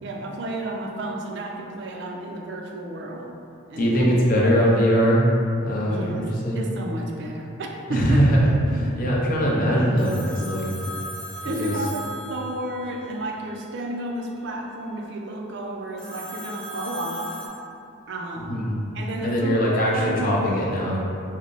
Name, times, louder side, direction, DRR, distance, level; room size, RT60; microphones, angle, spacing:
voice 1, 0.0-3.3 3.7-4.1 5.9-6.2 6.5-8.2 8.7-9.0 11.4-17.4 18.1-18.7 18.9-20.4, right 1 dB, 55° right, 1 dB, 0.4 m, -32 dB
voice 2, 3.8-5.3 5.6-6.6 7.9-8.4 9.0-10.7 11.5-11.7 18.4-18.8 19.2-21.0, equal, 40° left, -4 dB, 0.5 m, -21 dB
Telephone, 10.0-13.0 16.0-17.5, equal, ahead, 1.0 m, -37 dB
3.7 x 2.0 x 3.7 m, 2.7 s
head